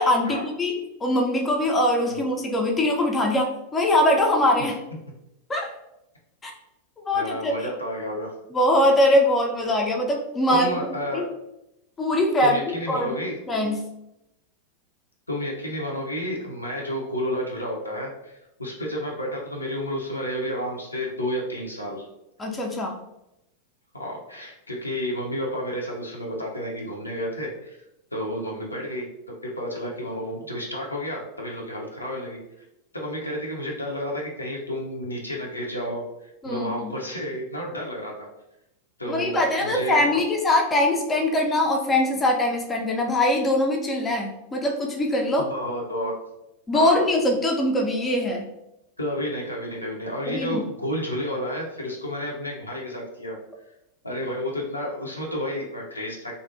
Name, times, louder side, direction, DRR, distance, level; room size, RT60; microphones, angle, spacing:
voice 1, 0.0-4.8 5.5-5.7 6.4-6.5 7.1-7.7 8.5-10.7 11.1-11.3 12.0-12.6 12.9-13.1 13.5-13.9 22.4-23.0 36.4-36.9 39.1-45.5 46.7-48.4 50.3-50.6, left 1 dB, 15° left, 1 dB, 0.4 m, -22 dB
voice 2, 7.1-8.3 10.5-11.2 12.4-13.4 15.3-22.1 23.9-27.8 28.1-29.1 29.4-32.4 32.9-38.1 39.0-39.3 39.6-40.2 45.4-46.1 46.7-47.1 49.0-53.4 54.0-56.3, equal, 85° left, -2 dB, 0.5 m, -31 dB
2.5 x 2.0 x 2.5 m, 0.87 s
figure-of-eight pair, 90°, 0 cm